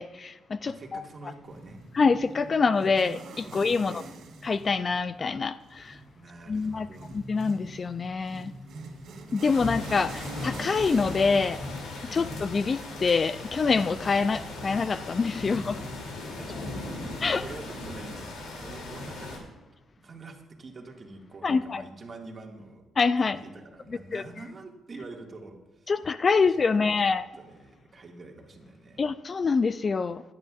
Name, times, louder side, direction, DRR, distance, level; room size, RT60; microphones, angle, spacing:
voice 1, 0.0-1.0 2.0-4.0 4.4-6.0 6.5-6.9 7.1-8.5 9.3-11.6 12.1-15.8 17.2-17.4 21.4-21.8 23.0-23.4 24.1-24.2 25.9-27.3 29.0-30.2, left 4 dB, 35° left, 14 dB, 0.4 m, -25 dB
voice 2, 0.6-1.8 3.4-4.0 6.1-7.2 12.1-12.3 16.4-17.0 17.4-19.4 20.0-22.8 23.2-25.9 26.4-29.1, right 3 dB, 40° right, 2 dB, 1.9 m, -46 dB
sound 1, 1.4-18.8, right 3 dB, 75° right, 2.0 m, -47 dB
sound 2, 9.5-19.4, left 2 dB, 80° left, 2.7 m, -38 dB
16.0 x 10.5 x 2.4 m, 1.2 s
cardioid pair, 90°, 0 cm